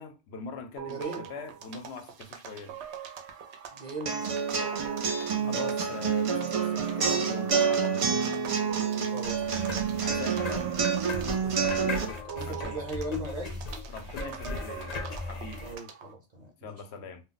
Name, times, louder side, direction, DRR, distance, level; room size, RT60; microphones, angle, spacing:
voice 1, 0.0-2.8 5.5-8.4 10.0-10.7 12.5-12.9 13.9-15.0 15.3-15.7 16.6-17.2, left 4 dB, 80° left, 0.9 m, -42 dB
sound 1, 0.8-16.1, right 9 dB, 90° right, 0.9 m, -43 dB
voice 2, 0.9-1.2 3.7-4.4 5.3-6.0 9.1-10.0 10.6-10.7 11.4-13.6 15.6-16.8, right 2 dB, 45° right, 0.7 m, -40 dB
sound 2, 4.1-12.0, right 6 dB, 65° right, 0.3 m, -28 dB
sound 3, 9.2-15.7, left 3 dB, 45° left, 0.6 m, -37 dB
2.3 x 2.1 x 3.8 m
omnidirectional pair, 1.1 m